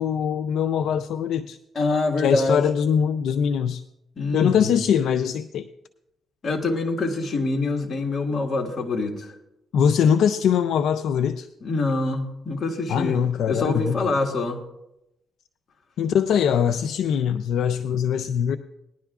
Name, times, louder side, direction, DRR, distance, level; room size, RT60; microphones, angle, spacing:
voice 1, 0.0-1.6 2.2-3.8 4.3-5.7 9.7-11.5 12.9-14.0 16.0-18.6, left 8 dB, 75° left, 0.4 m, -22 dB
voice 2, 1.7-2.6 4.2-4.8 6.4-9.3 11.6-13.2 13.5-14.6, left 3 dB, 45° left, 1.7 m, -25 dB
19.0 x 11.0 x 2.4 m
cardioid pair, 90°, 0 cm